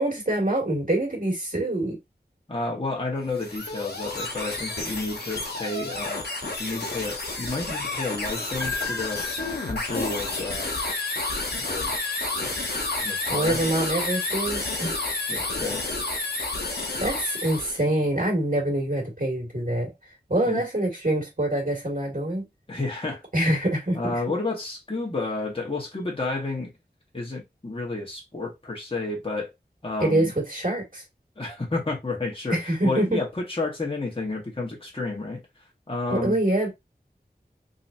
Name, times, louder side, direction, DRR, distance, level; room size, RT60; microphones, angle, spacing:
voice 1, 0.0-2.0 13.3-15.0 17.0-19.9 20.3-22.4 23.3-24.2 30.0-31.0 32.5-33.2 36.1-36.7, right 1 dB, 55° right, 2.3 m, -25 dB
voice 2, 2.5-9.2 9.6-10.8 11.6-11.9 12.4-12.5 13.0-13.6 15.3-15.8 20.4-20.6 22.7-23.2 23.5-23.6 23.9-26.7 27.1-29.5 29.8-30.3 31.4-35.4 35.9-36.4, left 3 dB, 35° left, 1.5 m, -31 dB
sound 1, 3.2-17.8, left 2 dB, 80° left, 1.1 m, -30 dB
sound 2, 8.6-11.5, left 4 dB, 10° left, 0.9 m, -36 dB
3.9 x 2.9 x 2.8 m
wide cardioid pair, 55°, 17 cm